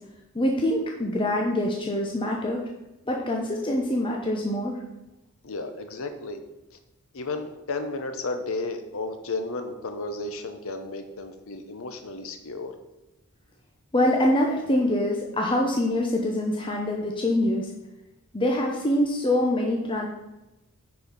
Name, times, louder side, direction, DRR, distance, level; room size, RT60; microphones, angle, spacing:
voice 1, 0.3-2.6 3.1-4.8 13.9-17.7 18.3-20.1, left 1 dB, 20° left, 0 dB, 0.8 m, -24 dB
voice 2, 5.4-6.4 7.1-12.7, left 3 dB, 65° left, 7 dB, 0.8 m, -33 dB
9.6 x 4.5 x 5.3 m, 0.97 s
head